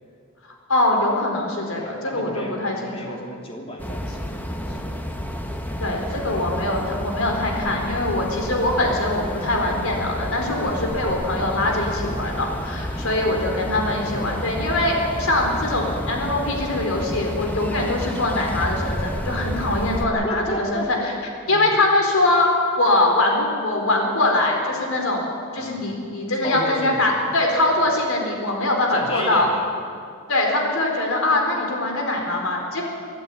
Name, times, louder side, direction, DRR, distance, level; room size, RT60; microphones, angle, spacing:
voice 1, 0.7-3.2 5.8-21.1 21.5-22.5 22.8-25.3 25.5-29.5 30.3-32.8, left 2 dB, 80° left, 1 dB, 4.5 m, -22 dB
voice 2, 1.8-4.8 5.7-5.9 6.2-6.5 13.0-13.7 20.2-20.9 21.4-21.7 25.6-25.8 26.4-27.2 27.6-27.9 28.9-29.7, equal, 25° left, 0 dB, 3.1 m, -34 dB
sound 1, 3.8-20.1, equal, 10° left, 1.3 m, -30 dB
24.5 x 12.0 x 9.7 m, 2.3 s
head